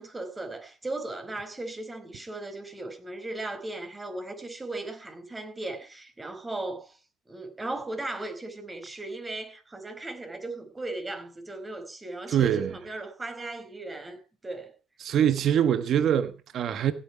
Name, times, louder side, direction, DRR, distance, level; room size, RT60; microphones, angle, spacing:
voice 1, 0.0-7.0 7.3-14.7, right 2 dB, 25° right, 4.5 m, -37 dB
voice 2, 12.3-12.7 15.0-16.9, right 9 dB, 70° right, 1.3 m, -24 dB
16.0 x 9.0 x 5.8 m
supercardioid pair, 65°, 0 cm